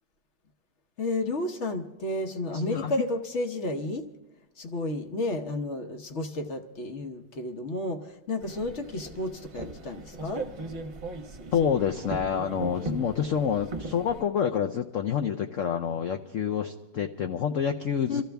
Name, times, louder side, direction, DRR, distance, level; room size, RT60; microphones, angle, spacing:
voice 1, 1.0-4.0 4.6-10.4 18.1-18.2, left 2 dB, 45° left, 5 dB, 1.0 m, -32 dB
voice 2, 2.5-3.1 11.5-18.2, left 8 dB, 70° left, 5 dB, 0.7 m, -28 dB
sound 1, 8.4-14.2, right 2 dB, 35° right, 1.1 m, -38 dB
26.0 x 13.5 x 3.5 m, 1.0 s
omnidirectional pair, 2.1 m